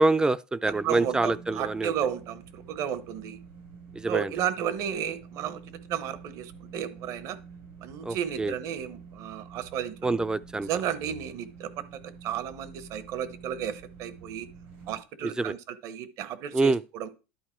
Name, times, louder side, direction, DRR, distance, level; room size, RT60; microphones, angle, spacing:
voice 1, 0.0-1.9 4.0-4.3 8.1-8.5 10.0-10.7 15.2-15.6 16.5-16.8, right 2 dB, 10° right, 0.4 m, -26 dB
sound 1, 0.6-15.0, right 5 dB, 85° right, 4.1 m, -48 dB
voice 2, 0.8-3.4 4.1-7.4 7.8-10.0 10.6-11.7 12.2-14.5 14.9-17.1, right 9 dB, 60° right, 1.0 m, -33 dB
11.0 x 4.1 x 4.5 m
supercardioid pair, 100°, 6 cm